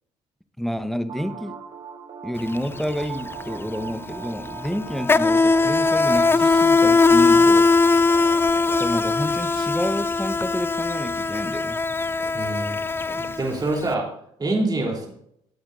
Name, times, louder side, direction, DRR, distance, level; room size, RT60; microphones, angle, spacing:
voice 1, 0.6-1.5 2.2-7.7 8.8-11.8, equal, ahead, 9 dB, 1.1 m, -29 dB
sound 1, 1.1-8.9, right 6 dB, 45° right, 1.7 m, -39 dB
Insect, 2.4-2.6 2.8-13.8, left 4 dB, 15° left, 0.4 m, -20 dB
voice 2, 12.3-12.8 13.1-14.1 14.4-15.1, right 2 dB, 30° right, -1 dB, 3.7 m, -25 dB
17.5 x 8.6 x 2.7 m, 0.70 s
cardioid pair, 85°, 13 cm